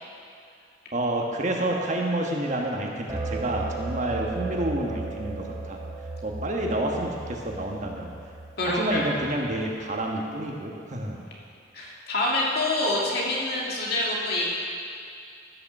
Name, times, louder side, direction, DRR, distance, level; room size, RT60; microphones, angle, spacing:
voice 1, 0.9-5.8 6.2-8.1 8.6-11.2, right 1 dB, 40° right, 0 dB, 1.4 m, -29 dB
sound 1, 3.1-9.6, right 3 dB, 20° right, 0.8 m, -35 dB
voice 2, 8.6-9.0 11.7-14.5, left 2 dB, 55° left, -4 dB, 2.5 m, -26 dB
15.5 x 6.8 x 6.6 m, 2.4 s
head